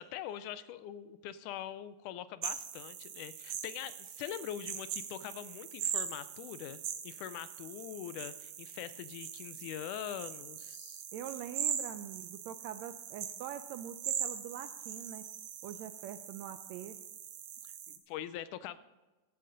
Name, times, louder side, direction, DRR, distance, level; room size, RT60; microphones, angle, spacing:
voice 1, 0.0-6.8 7.0-11.1 17.6-18.8, left 11 dB, 85° left, 15 dB, 2.1 m, -43 dB
sound 1, 2.4-18.0, right 9 dB, 65° right, 2.0 m, -41 dB
voice 2, 11.1-15.3 15.6-17.0, right 10 dB, 80° right, 10 dB, 1.6 m, -44 dB
15.0 x 13.0 x 3.9 m, 1.1 s
omnidirectional pair, 3.6 m